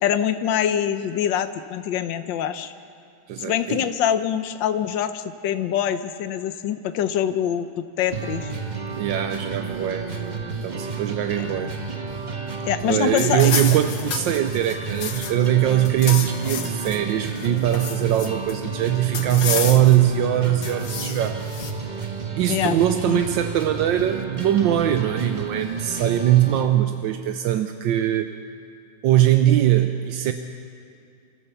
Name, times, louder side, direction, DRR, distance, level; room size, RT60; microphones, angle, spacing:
voice 1, 0.0-2.7 3.4-8.5 12.6-13.5 22.5-22.8 23.1-23.2, left 9 dB, 80° left, 10 dB, 1.5 m, -24 dB
voice 2, 3.3-3.8 9.0-10.4 10.6-11.7 12.8-21.4 22.4-28.3 29.0-30.3, right 12 dB, 80° right, 7 dB, 1.4 m, -21 dB
sound 1, 8.1-26.7, right 5 dB, 30° right, 1.1 m, -31 dB
sound 2, 13.2-15.5 15.8-17.0 17.4-18.5 19.1-20.1 20.6-21.7, left 7 dB, 65° left, 1.6 m, -30 dB
28.0 x 14.5 x 6.9 m, 2.5 s
omnidirectional pair, 2.0 m